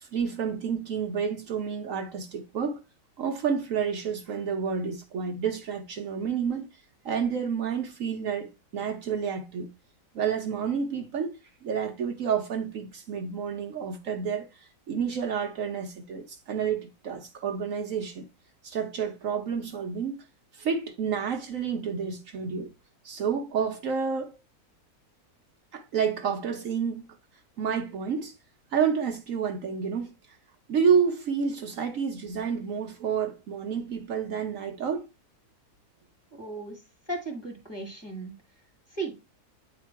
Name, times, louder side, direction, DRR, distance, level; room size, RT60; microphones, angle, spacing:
voice 1, 0.0-2.8 3.2-6.7 7.0-9.7 10.1-11.3 11.6-14.5 14.9-18.2 18.6-20.2 20.5-22.7 23.0-24.4 25.7-27.1 27.6-28.3 28.7-30.1 30.7-35.0, right 6 dB, 65° right, 1.1 m, -29 dB
voice 2, 36.3-36.8 37.1-38.3 38.9-39.1, right 2 dB, 15° left, 1.5 m, -35 dB
8.6 x 2.9 x 4.5 m
omnidirectional pair, 1.6 m